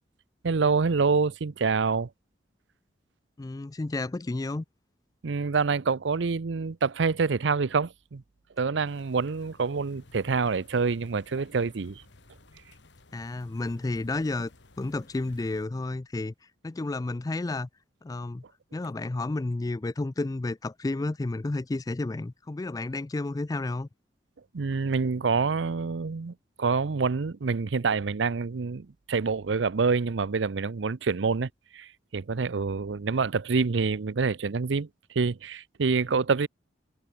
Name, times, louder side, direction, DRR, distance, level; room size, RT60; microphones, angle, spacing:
voice 1, 0.4-2.1 5.2-8.2 8.6-12.0 24.5-34.9 35.1-36.5, right 4 dB, 75° right, 0.6 m, -27 dB
voice 2, 3.4-4.6 13.1-14.5 14.8-16.3 16.6-17.7 18.0-18.4 18.7-23.9, left 2 dB, 20° left, 0.4 m, -31 dB
sound 1, 8.8-15.7, left 2 dB, 70° left, 2.0 m, -55 dB
head